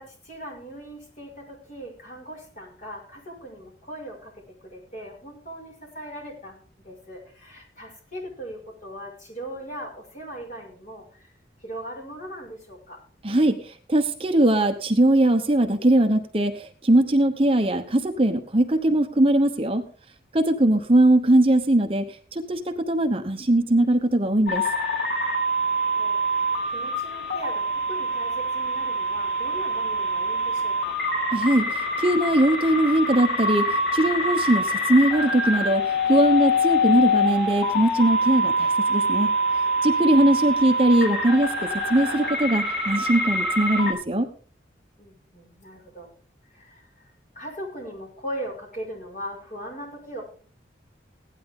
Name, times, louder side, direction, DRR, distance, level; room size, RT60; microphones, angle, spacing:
voice 1, 0.0-11.3 11.6-13.0 25.6-31.0 45.0-46.1 46.4-50.2, right 1 dB, 40° left, 0 dB, 6.2 m, -39 dB
voice 2, 13.2-19.8 20.3-24.6 31.3-33.6 33.9-35.8 36.1-39.3 39.8-41.5 41.9-44.3, right 1 dB, 30° right, 6 dB, 1.0 m, -20 dB
sound 1, 24.5-43.9, equal, 65° left, 6.2 m, -25 dB
16.5 x 11.0 x 3.8 m, 0.41 s
head